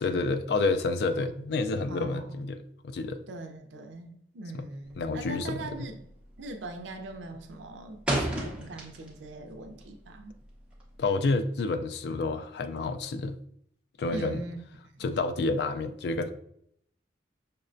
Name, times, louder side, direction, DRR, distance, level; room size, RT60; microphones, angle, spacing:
voice 1, 0.0-2.6 2.8-3.2 5.0-5.6 11.0-13.4 14.0-14.4 15.0-16.3, left 3 dB, 60° left, 0.3 m, -29 dB
voice 2, 1.9-2.4 3.3-6.0 6.4-10.4 14.1-14.6 14.8-15.1, right 2 dB, 85° right, 0.4 m, -41 dB
sound 1, 4.8-5.2 5.5-5.9 6.2-6.6 7.0-9.3 9.6-11.1, right 1 dB, 5° right, 0.7 m, -32 dB
5.6 x 2.1 x 2.5 m
head